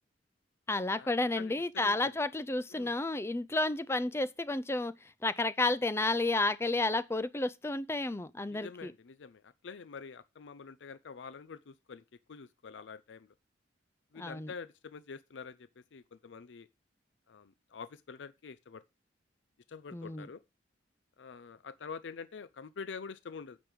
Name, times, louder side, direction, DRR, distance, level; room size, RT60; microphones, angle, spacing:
voice 1, 0.7-4.9 5.2-8.9 14.2-14.5 19.9-20.3, left 2 dB, 15° left, 0.5 m, -31 dB
voice 2, 1.3-2.1 2.7-2.9 8.5-13.3 14.1-16.7 17.3-18.8 19.7-20.4 21.2-23.6, left 5 dB, 75° left, 0.5 m, -46 dB
9.0 x 5.3 x 6.1 m
head